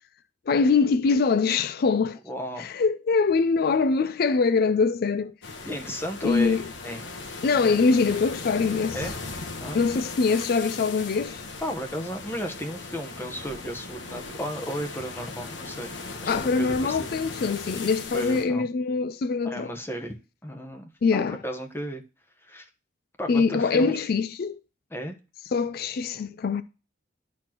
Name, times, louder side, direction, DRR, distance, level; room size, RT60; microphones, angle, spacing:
voice 1, 0.5-2.2 2.6-5.3 6.2-6.7 7.4-9.0 9.7-11.4 16.3-19.7 21.0-21.4 23.3-24.6 25.5-26.6, left 4 dB, 55° left, 0.4 m, -23 dB
voice 2, 2.2-2.8 5.6-7.1 8.9-9.1 9.6-9.8 11.6-15.9 16.2-17.0 18.1-18.7 19.4-22.0 22.4-22.7 23.2-24.1 24.9-25.1, equal, 10° left, 1.0 m, -34 dB
sound 1, 5.4-18.4, left 3 dB, 70° left, 1.2 m, -38 dB
12.0 x 4.3 x 3.0 m
head